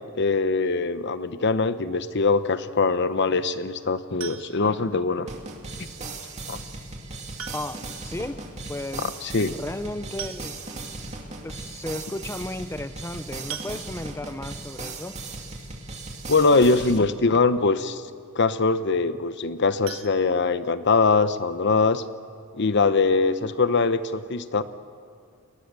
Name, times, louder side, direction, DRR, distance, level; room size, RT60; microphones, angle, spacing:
voice 1, 0.2-5.3 6.5-6.6 9.2-9.5 16.3-18.0 18.4-22.0 22.6-24.6, left 3 dB, 55° left, 12 dB, 0.9 m, -22 dB
sound 1, 4.2-4.8 6.3-6.4 7.4-8.0 8.3-8.4 8.7-8.8 9.8-9.9 10.2-10.9 11.5-11.6 11.9-12.1 13.5-14.3 19.8-21.0 21.4-21.5 21.9-22.0 22.4-22.5, right 9 dB, 70° right, 1.3 m, -40 dB
sound 2, 5.3-17.0, right 3 dB, 35° right, 2.5 m, -37 dB
voice 2, 7.5-8.4 8.7-9.1 9.5-10.6 11.4-15.2, left 1 dB, 15° left, 11 dB, 0.5 m, -34 dB
29.5 x 20.0 x 6.9 m, 2.2 s
head